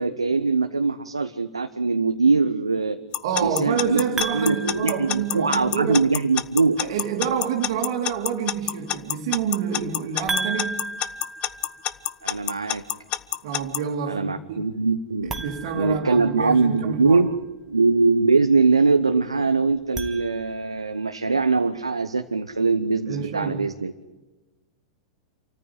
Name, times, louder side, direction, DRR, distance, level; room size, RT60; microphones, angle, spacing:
voice 1, 0.0-3.0 3.4-6.8 12.2-12.8 14.1-15.4 15.7-17.3 17.7-23.9, right 4 dB, 85° right, 1.1 m, -22 dB
Alarm / Clock, 3.1-13.8, left 14 dB, 40° left, 1.1 m, -26 dB
voice 2, 3.2-6.0 6.8-10.9 13.4-14.7 15.4-17.2 23.1-23.7, right 8 dB, 55° right, 2.6 m, -28 dB
sound 1, 4.2-5.9 10.3-12.3 15.2-16.8 19.7-20.9, right 3 dB, 15° right, 2.3 m, -34 dB
28.0 x 14.5 x 9.8 m
figure-of-eight pair, 95°, 3 cm